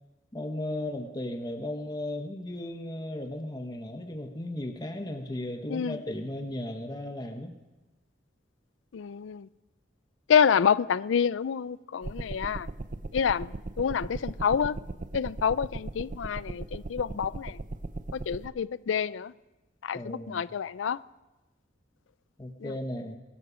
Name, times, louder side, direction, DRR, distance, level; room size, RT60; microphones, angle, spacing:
voice 1, 0.3-7.5 19.9-20.4 22.4-23.2, left 1 dB, 20° left, 1.0 m, -35 dB
voice 2, 8.9-9.5 10.3-12.7 13.1-14.8 15.1-17.6 18.1-19.3 19.8-21.0 22.6-22.7, left 7 dB, 90° left, 0.4 m, -27 dB
sound 1, 12.0-18.5, right 2 dB, 45° right, 0.6 m, -38 dB
22.5 x 11.5 x 5.1 m
head